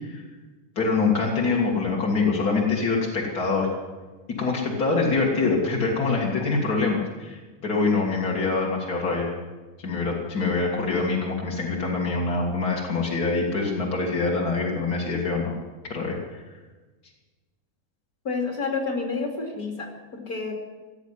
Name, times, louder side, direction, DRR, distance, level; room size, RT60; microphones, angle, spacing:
voice 1, 0.8-3.7 4.4-9.3 9.8-15.5 15.8-16.4, left 4 dB, 90° left, -2 dB, 2.7 m, -25 dB
voice 2, 18.2-20.5, left 4 dB, 70° left, 2 dB, 3.1 m, -29 dB
17.0 x 8.2 x 9.7 m, 1.3 s
omnidirectional pair, 1.6 m